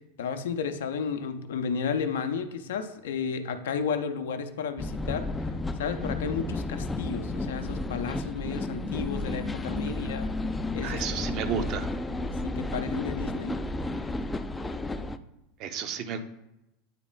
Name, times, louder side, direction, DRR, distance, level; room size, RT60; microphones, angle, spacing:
voice 1, 0.2-5.3 5.8-10.3 10.7-11.2 12.2-13.6, left 6 dB, 65° left, 8 dB, 0.6 m, -33 dB
sound 1, 4.8-15.2, left 2 dB, 15° left, 0.4 m, -32 dB
voice 2, 10.8-11.9 15.6-16.2, right 7 dB, 40° right, 8 dB, 0.7 m, -32 dB
9.1 x 3.9 x 3.7 m, 0.89 s
figure-of-eight pair, 80°, 0 cm